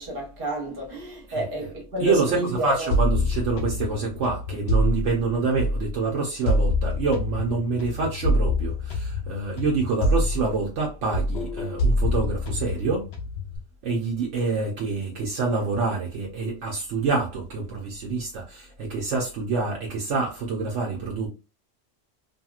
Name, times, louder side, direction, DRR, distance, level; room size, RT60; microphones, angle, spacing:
voice 1, 0.0-3.0, equal, 50° right, 1.2 m, -30 dB
voice 2, 1.3-1.7 2.0-13.1 13.8-21.3, right 4 dB, 75° right, 1.0 m, -27 dB
sound 1, 2.9-6.0 6.5-10.9 11.1-13.6, left 1 dB, 65° left, 0.9 m, -26 dB
2.9 x 2.7 x 2.3 m
omnidirectional pair, 1.3 m